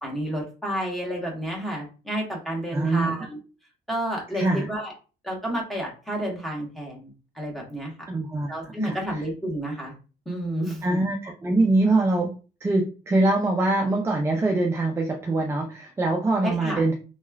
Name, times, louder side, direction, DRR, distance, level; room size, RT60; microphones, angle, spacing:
voice 1, 0.0-3.4 3.9-4.9 5.2-7.9 8.5-9.9 10.3-10.8 16.4-16.8, right 1 dB, ahead, -1 dB, 1.1 m, -30 dB
voice 2, 2.7-3.1 4.3-4.7 8.1-8.5 8.8-9.2 10.8-12.3 12.6-16.9, right 2 dB, 15° right, 1 dB, 0.4 m, -23 dB
3.0 x 2.3 x 2.2 m, 0.33 s
cardioid pair, 110°, 17 cm